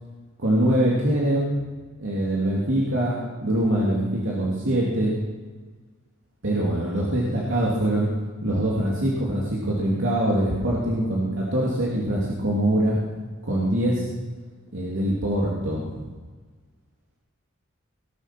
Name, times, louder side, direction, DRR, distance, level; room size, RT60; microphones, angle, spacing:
voice 1, 0.4-1.6 2.0-5.1 6.4-8.1 8.4-13.0 13.5-14.0 14.7-16.0, right 1 dB, 70° right, -5 dB, 2.7 m, -23 dB
20.0 x 7.6 x 6.1 m, 1.4 s
head